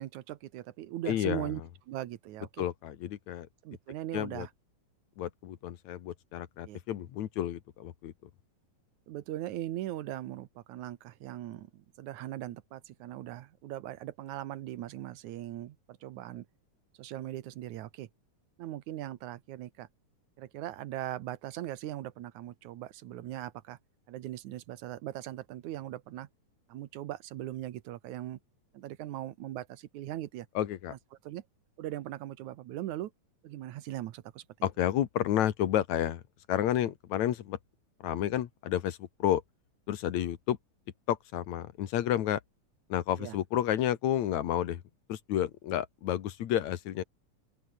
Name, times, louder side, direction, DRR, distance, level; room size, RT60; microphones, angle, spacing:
voice 1, 0.0-1.6 1.9-2.7 3.6-4.5 6.6-6.8 9.1-16.5 17.0-18.1 18.6-19.9 20.4-23.8 24.1-26.3 26.7-28.4 28.7-30.5 30.9-31.0 31.2-31.4 31.8-33.1 33.4-34.5 43.2-43.4, right 13 dB, 85° right, 2.5 m, -39 dB
voice 2, 1.1-1.5 2.6-3.5 4.1-4.5 5.2-8.1 30.5-30.9 34.6-36.2 36.5-37.6 38.0-39.4 39.9-40.6 41.1-42.4 42.9-44.8 45.1-47.0, left 11 dB, 75° left, 2.6 m, -31 dB
open air
omnidirectional pair, 3.3 m